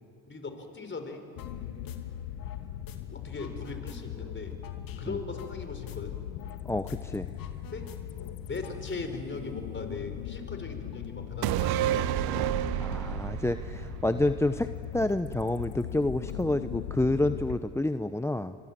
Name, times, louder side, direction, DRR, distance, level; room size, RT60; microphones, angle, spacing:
voice 1, 0.3-1.3 3.1-4.6 4.8-6.2 7.7-7.9 8.5-12.6, left 3 dB, 30° left, 7 dB, 4.8 m, -39 dB
sound 1, 1.4-17.6, left 10 dB, 75° left, 1.4 m, -39 dB
sound 2, 1.4-1.6 1.9-3.0 3.3-6.6 6.9-7.0 7.3-9.4, left 9 dB, 60° left, 2.6 m, -51 dB
voice 2, 6.7-7.3 12.8-18.6, left 2 dB, 5° left, 10 dB, 0.8 m, -29 dB
sound 3, 11.4-15.0 15.3-15.4, right 13 dB, 65° right, 0.9 m, -30 dB
29.0 x 25.0 x 7.5 m, 2.5 s
supercardioid pair, 70°, 40 cm